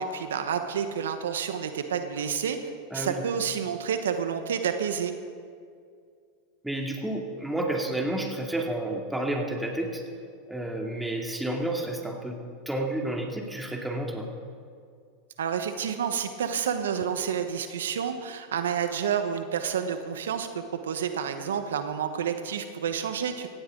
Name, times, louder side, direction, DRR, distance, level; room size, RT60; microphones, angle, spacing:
voice 1, 0.0-2.6 2.9-5.1 15.4-23.5, right 7 dB, 85° right, 8 dB, 1.1 m, -29 dB
voice 2, 2.9-3.2 6.6-10.0 10.5-12.4 12.7-14.3, right 1 dB, 5° right, 0 dB, 2.6 m, -30 dB
18.0 x 15.5 x 3.9 m, 2.2 s
hypercardioid pair, 100°, 0 cm